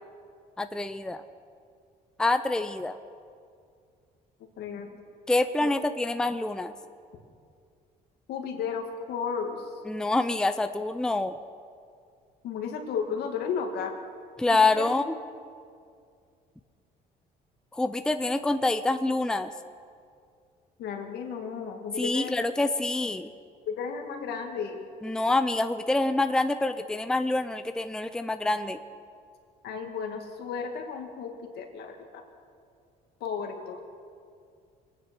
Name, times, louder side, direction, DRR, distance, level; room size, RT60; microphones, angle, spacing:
voice 1, 0.6-1.2 2.2-3.0 5.3-6.7 9.9-11.3 14.4-15.1 17.7-19.5 22.0-23.3 25.0-28.8, left 2 dB, 5° left, 9 dB, 0.5 m, -26 dB
voice 2, 4.6-4.9 5.6-5.7 8.3-9.7 12.4-13.9 14.5-15.0 20.8-22.4 23.7-24.8 29.6-32.2 33.2-33.8, left 6 dB, 75° left, 4 dB, 2.1 m, -34 dB
23.5 x 9.7 x 6.2 m, 2.3 s
cardioid pair, 110°, 17 cm